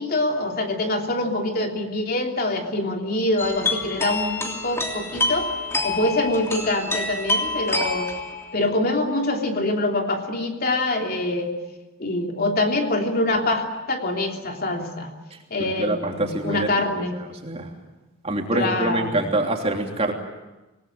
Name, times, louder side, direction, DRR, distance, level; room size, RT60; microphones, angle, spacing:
voice 1, 0.0-5.5 5.8-8.1 8.5-11.6 12.0-15.1 15.5-17.2 18.5-19.1, left 2 dB, 50° left, 2 dB, 3.2 m, -25 dB
sound 1, 3.4-8.6, left 2 dB, 15° left, 3.1 m, -27 dB
voice 2, 15.6-16.7 16.9-17.0 17.4-17.7 18.2-20.1, right 2 dB, 30° right, 2 dB, 3.1 m, -25 dB
26.0 x 19.5 x 8.9 m, 1.1 s
head